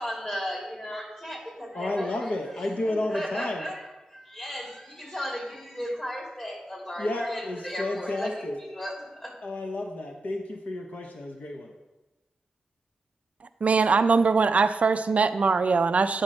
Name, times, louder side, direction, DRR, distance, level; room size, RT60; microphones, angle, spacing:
voice 1, 0.0-2.3 2.8-9.3, equal, 25° left, -2 dB, 2.8 m, -35 dB
voice 2, 1.7-3.7 7.0-8.6 9.4-11.7, left 2 dB, 70° left, 2 dB, 0.8 m, -31 dB
voice 3, 13.6-16.2, right 4 dB, 60° right, 11 dB, 0.3 m, -22 dB
8.7 x 5.2 x 4.2 m, 1.1 s
wide cardioid pair, 75°, 3 cm